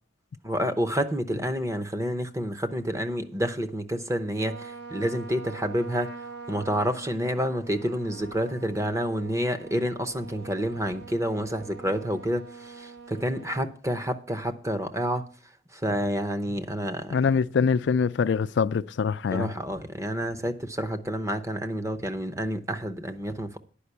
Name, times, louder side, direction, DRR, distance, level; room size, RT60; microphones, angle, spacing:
voice 1, 0.4-6.1 6.5-15.2 15.7-17.2 19.3-23.6, equal, 15° right, 0.7 m, -29 dB
Trumpet, 4.3-13.7, right 4 dB, 60° right, 1.1 m, -44 dB
voice 2, 17.1-19.5, left 5 dB, 65° left, 0.4 m, -24 dB
10.0 x 5.3 x 8.1 m
head